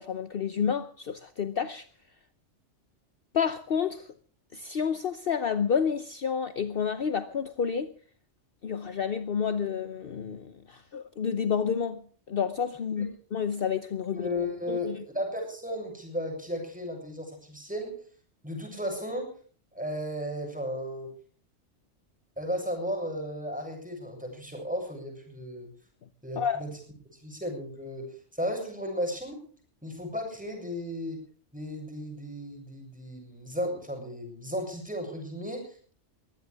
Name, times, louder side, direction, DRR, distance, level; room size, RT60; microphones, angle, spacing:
voice 1, 0.0-1.9 3.3-4.1 4.5-7.9 8.6-12.0 12.3-14.3 14.7-15.0 26.4-26.6, left 7 dB, 55° left, 1.0 m, -29 dB
voice 2, 14.1-18.0 18.4-19.3 19.7-21.1 22.4-25.7 26.2-26.7 27.2-29.4 29.8-31.2 31.5-35.9, equal, 5° right, 7.3 m, -34 dB
22.5 x 16.0 x 3.5 m
omnidirectional pair, 1.2 m